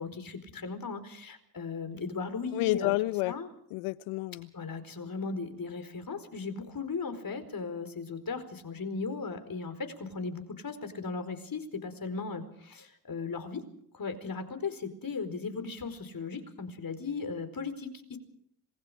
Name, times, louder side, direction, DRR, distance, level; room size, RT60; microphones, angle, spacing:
voice 1, 0.0-2.9 3.3-3.5 4.5-13.6 13.9-18.2, left 4 dB, 45° left, 4.7 m, -37 dB
voice 2, 2.5-3.3 3.7-4.5, left 20 dB, 85° left, 0.8 m, -29 dB
26.5 x 21.5 x 5.1 m
supercardioid pair, 50°, 49 cm